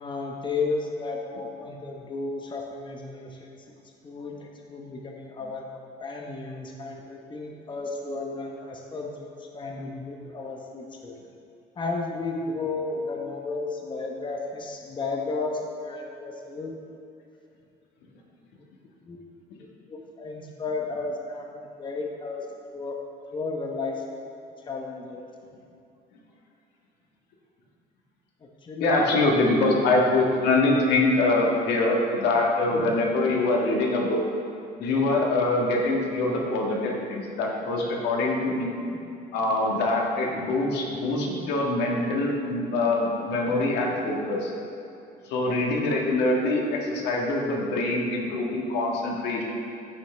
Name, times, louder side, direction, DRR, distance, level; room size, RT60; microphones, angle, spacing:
voice 1, 0.0-11.2 11.8-16.7 19.0-19.2 19.9-22.5 22.7-23.0 23.3-25.3 28.6-29.1, left 3 dB, 30° left, 1 dB, 1.0 m, -33 dB
voice 2, 28.8-34.2 34.8-38.7 39.3-44.5 45.3-49.4, left 2 dB, 85° left, -1 dB, 1.7 m, -24 dB
14.5 x 6.3 x 3.4 m, 2.7 s
cardioid pair, 110°, 17 cm